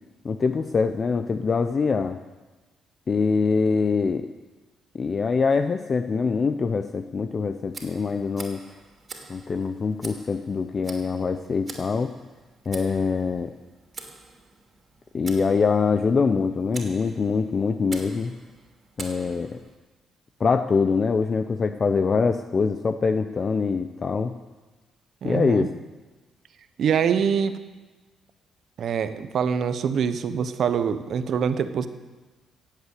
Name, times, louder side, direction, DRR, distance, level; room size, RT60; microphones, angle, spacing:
voice 1, 0.2-2.2 3.1-4.3 4.9-8.6 9.3-12.1 12.7-13.5 15.1-18.3 19.0-19.6 20.4-24.3 25.2-25.7, left 5 dB, 40° left, 9 dB, 0.7 m, -24 dB
Tick, 7.7-19.8, right 4 dB, 40° right, 2.8 m, -45 dB
voice 2, 25.2-25.7 26.8-27.6 28.8-31.9, right 7 dB, 60° right, 11 dB, 1.0 m, -24 dB
16.0 x 8.3 x 8.3 m, 1.2 s
cardioid pair, 90°, 0 cm